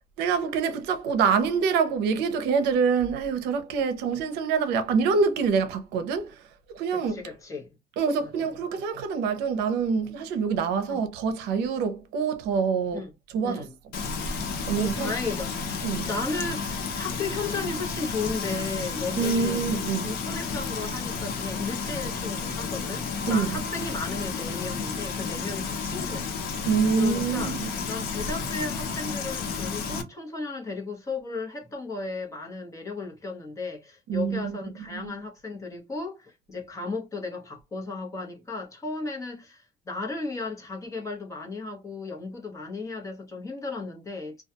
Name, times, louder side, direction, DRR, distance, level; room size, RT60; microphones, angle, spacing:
voice 1, 0.2-7.2 8.0-13.7 14.7-15.1 15.8-16.1 19.2-20.2 23.3-23.6 26.6-27.7 34.1-34.6 34.9-35.1, right 5 dB, 85° right, 0.6 m, -26 dB
voice 2, 6.9-7.7 8.2-8.3 10.9-11.0 12.9-13.1 13.4-13.7 14.8-15.7 16.0-19.6 20.0-26.3 27.0-27.5 27.9-44.4, left 3 dB, 20° left, 0.8 m, -35 dB
Frying (food), 13.9-30.0, left 5 dB, 65° left, 0.7 m, -32 dB
2.3 x 2.2 x 2.8 m
cardioid pair, 145°, 17 cm